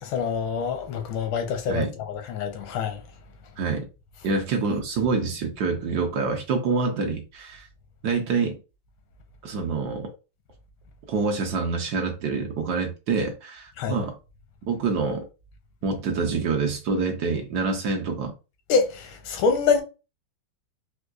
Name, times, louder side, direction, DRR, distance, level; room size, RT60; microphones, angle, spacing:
voice 1, 0.0-3.0 13.8-14.0 18.7-19.8, left 5 dB, 85° left, 1.5 m, -25 dB
voice 2, 3.6-3.9 4.2-7.7 8.0-8.6 9.4-10.1 11.1-14.2 14.7-15.2 15.8-18.3, right 4 dB, 70° right, 1.1 m, -26 dB
4.5 x 2.3 x 2.3 m
omnidirectional pair, 2.1 m